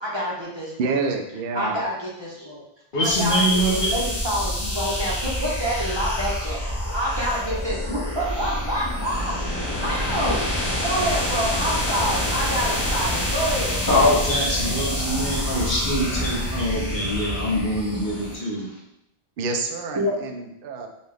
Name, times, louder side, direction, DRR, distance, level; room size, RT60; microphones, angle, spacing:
voice 1, 0.0-1.0 1.5-2.6 3.0-9.3 9.8-10.4 10.8-13.8 20.0-20.1, equal, 30° right, -5 dB, 0.7 m, -27 dB
voice 2, 0.8-1.8 19.4-20.9, right 4 dB, 65° right, 4 dB, 0.7 m, -27 dB
voice 3, 2.9-4.0 13.9-18.8, equal, 55° left, -4 dB, 1.0 m, -23 dB
sound 1, 3.0-18.4, left 1 dB, 20° left, 0.7 m, -27 dB
4.0 x 2.3 x 3.3 m, 0.79 s
omnidirectional pair, 1.1 m